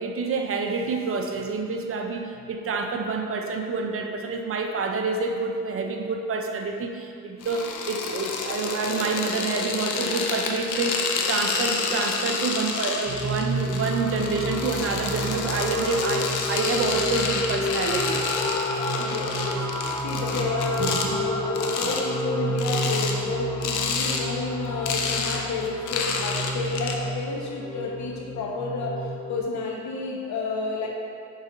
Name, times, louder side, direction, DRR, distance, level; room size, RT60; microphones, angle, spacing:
voice 1, 0.0-11.0 11.3-18.2 20.8-21.1, right 4 dB, 50° right, 4 dB, 0.6 m, -28 dB
sound 1, 7.4-21.1 21.6-22.0 22.6-23.2 23.6-24.2 24.5-27.0, left 5 dB, 85° left, 0.7 m, -29 dB
sound 2, 13.1-29.4, equal, 15° left, 1.1 m, -30 dB
voice 2, 19.0-19.6 20.0-28.9 29.3-30.9, left 4 dB, 65° left, -1 dB, 1.1 m, -30 dB
6.4 x 4.0 x 3.8 m, 2.3 s
cardioid pair, 90°, 30 cm